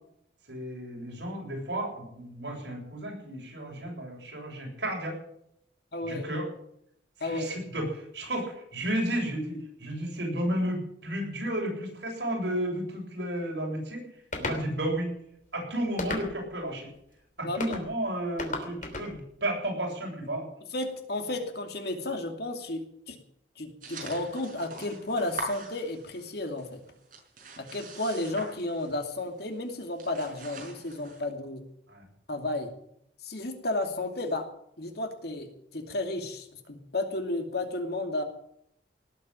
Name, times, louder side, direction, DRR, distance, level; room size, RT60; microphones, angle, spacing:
voice 1, 0.5-5.2 6.1-6.4 7.2-14.1 14.4-15.1 15.5-16.9 17.4-20.5 31.9-32.1, right 1 dB, 70° right, 0 dB, 7.5 m, -32 dB
voice 2, 5.9-6.2 7.2-7.5 17.4-17.8 20.7-23.2 23.6-26.8 27.6-31.6 32.3-32.7 33.2-34.5 34.8-38.2, left 2 dB, 60° left, 5 dB, 2.7 m, -33 dB
sound 1, 14.3-14.6 16.0-16.6 17.6-17.8 18.4-19.1, left 2 dB, 45° left, 3.2 m, -34 dB
sound 2, 23.8-26.3 26.6-29.1 29.4-29.6 29.9-31.2, right 2 dB, 50° right, 5.8 m, -43 dB
18.5 x 8.6 x 9.0 m, 0.72 s
head